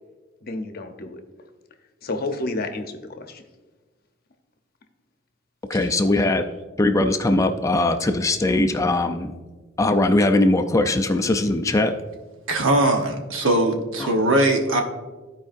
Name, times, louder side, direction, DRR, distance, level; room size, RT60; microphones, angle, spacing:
voice 1, 0.4-1.2 2.0-3.4, left 2 dB, 50° left, 6 dB, 0.7 m, -30 dB
voice 2, 5.7-6.4 6.8-9.3 9.8-12.0 14.0-14.1, left 2 dB, 15° left, 6 dB, 0.4 m, -20 dB
voice 3, 12.5-14.8, right 1 dB, 75° right, 3 dB, 1.1 m, -20 dB
14.0 x 4.8 x 2.6 m, 1.3 s
head